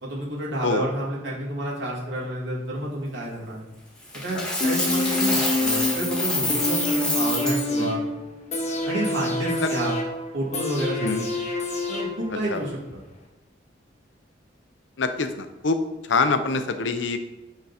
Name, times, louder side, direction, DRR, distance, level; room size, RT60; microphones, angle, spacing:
voice 1, 0.0-3.6 4.1-8.0 8.9-10.0 10.3-11.4 11.9-12.8, right 1 dB, 75° right, -5 dB, 2.5 m, -30 dB
Coin (dropping), 4.1-7.6, left 1 dB, 5° left, 1.4 m, -27 dB
sound 1, 4.6-12.6 12.9-13.0, left 2 dB, 40° left, 1.1 m, -27 dB
voice 2, 15.0-15.8 16.1-17.2, left 4 dB, 80° left, 9 dB, 0.6 m, -25 dB
8.1 x 3.9 x 4.2 m, 1.1 s
head